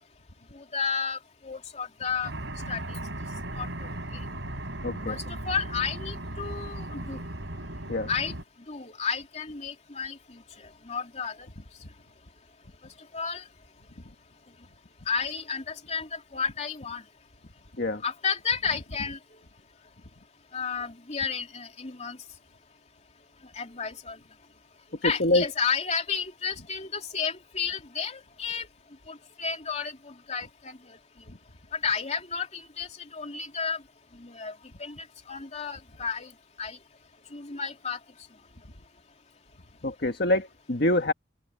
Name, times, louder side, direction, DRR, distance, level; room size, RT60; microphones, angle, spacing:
voice 1, 0.5-2.3 2.7-3.0 3.5-4.2 5.1-7.2 8.1-8.3 8.7-10.4 10.8-11.5 13.1-13.4 15.1-17.0 18.0-19.2 20.5-22.2 23.5-24.2 25.0-28.7 29.1-31.0 31.7-33.8 34.1-34.5 34.8-36.3 36.6-36.8 37.3-38.0, left 6 dB, 40° left, 2.9 m, -32 dB
sound 1, 2.2-8.4, right 1 dB, 85° right, 5.2 m, -37 dB
voice 2, 4.8-5.2 7.9-8.1 17.8-18.0 25.0-25.4 31.3-31.4 39.8-41.1, left 1 dB, 60° left, 1.7 m, -25 dB
open air
head